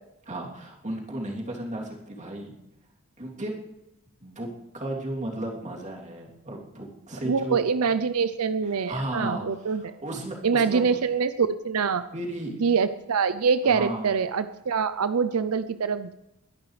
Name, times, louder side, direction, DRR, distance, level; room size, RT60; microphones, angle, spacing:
voice 1, 0.3-2.5 3.2-3.5 4.2-4.5 4.7-7.6 8.6-10.9 12.1-12.6 13.6-14.1, right 1 dB, 35° right, -1 dB, 3.2 m, -34 dB
voice 2, 7.2-9.9 10.4-12.0 12.6-16.1, right 5 dB, 85° right, 12 dB, 0.6 m, -25 dB
22.0 x 11.0 x 3.3 m, 0.91 s
head